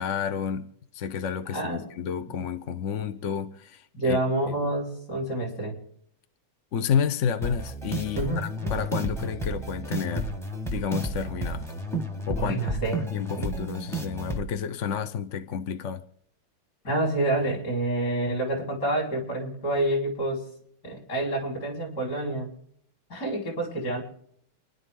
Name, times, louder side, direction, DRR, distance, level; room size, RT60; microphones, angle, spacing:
voice 1, 0.0-4.2 6.7-10.3 10.7-11.7 12.3-12.6 13.1-16.0, left 7 dB, 60° left, 0.8 m, -30 dB
voice 2, 1.5-1.9 3.9-5.8 8.1-8.7 12.4-13.1 13.4-13.5 16.8-20.4 20.8-22.5 23.1-24.0, right 1 dB, 45° left, 5.2 m, -28 dB
sound 1, 7.4-14.4, right 1 dB, ahead, 0.9 m, -32 dB
29.0 x 11.0 x 3.8 m
omnidirectional pair, 2.4 m